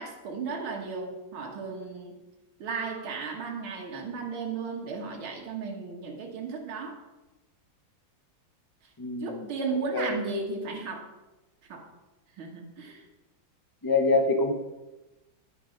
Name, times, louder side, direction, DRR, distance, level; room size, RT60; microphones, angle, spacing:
voice 1, 0.0-2.2 2.6-7.0 9.2-11.1 11.7-11.9 12.4-13.1, right 4 dB, 75° right, 0 dB, 2.3 m, -35 dB
voice 2, 9.0-9.5 9.9-10.2 13.8-14.5, left 3 dB, 35° left, 4 dB, 0.3 m, -25 dB
11.0 x 9.2 x 5.2 m, 1.0 s
omnidirectional pair, 2.3 m